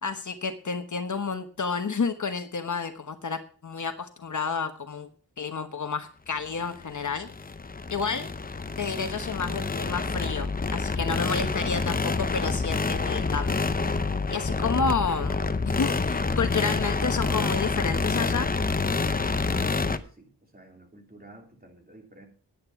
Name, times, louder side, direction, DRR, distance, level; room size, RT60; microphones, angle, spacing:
voice 1, 0.0-5.1 5.4-7.3 7.9-8.3 8.8-13.7 14.3-18.5, left 5 dB, 50° left, 9 dB, 1.1 m, -30 dB
sound 1, 6.7-20.0, left 4 dB, 25° left, 0.7 m, -28 dB
voice 2, 19.4-22.3, right 1 dB, 25° right, 2 dB, 3.2 m, -50 dB
10.5 x 9.6 x 5.7 m, 0.41 s
wide cardioid pair, 120°, 38 cm